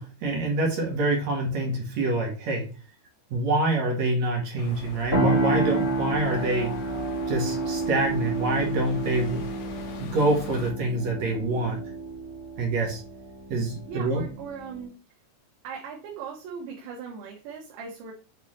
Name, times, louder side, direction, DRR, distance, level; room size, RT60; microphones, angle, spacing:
voice 1, 0.0-2.6 3.3-6.7 7.3-9.5 10.0-11.8 12.6-13.0 13.5-14.2, right 2 dB, 55° right, 0 dB, 2.3 m, -26 dB
sound 1, 4.6-10.7, left 4 dB, 85° left, 3.4 m, -42 dB
sound 2, 5.1-14.8, right 2 dB, 35° right, 0.4 m, -30 dB
voice 2, 13.9-14.9 15.6-18.1, right 6 dB, 80° right, -3 dB, 3.5 m, -39 dB
8.7 x 4.0 x 3.2 m, 0.35 s
omnidirectional pair, 5.2 m